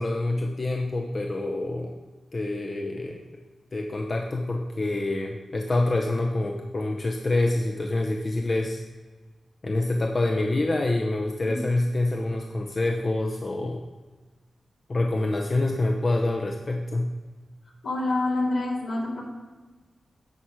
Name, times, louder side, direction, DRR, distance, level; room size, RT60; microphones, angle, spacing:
voice 1, 0.0-2.0 2.3-3.2 3.7-8.8 9.6-13.8 14.9-17.1, left 2 dB, 50° left, 1 dB, 0.7 m, -26 dB
voice 2, 17.8-19.3, left 2 dB, 80° left, -5 dB, 2.3 m, -27 dB
10.5 x 4.3 x 4.8 m, 1.3 s
supercardioid pair, 40°, 0 cm